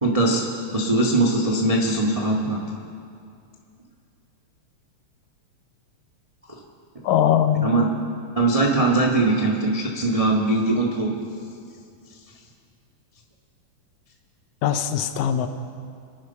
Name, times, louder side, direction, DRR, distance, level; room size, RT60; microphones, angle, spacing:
voice 1, 0.0-2.6 6.5-6.6 7.6-7.8 8.3-11.1, right 2 dB, 30° right, -1 dB, 0.6 m, -21 dB
voice 2, 7.0-7.7 14.6-15.5, left 10 dB, 80° left, 9 dB, 2.2 m, -21 dB
26.5 x 9.6 x 5.7 m, 2.4 s
omnidirectional pair, 3.4 m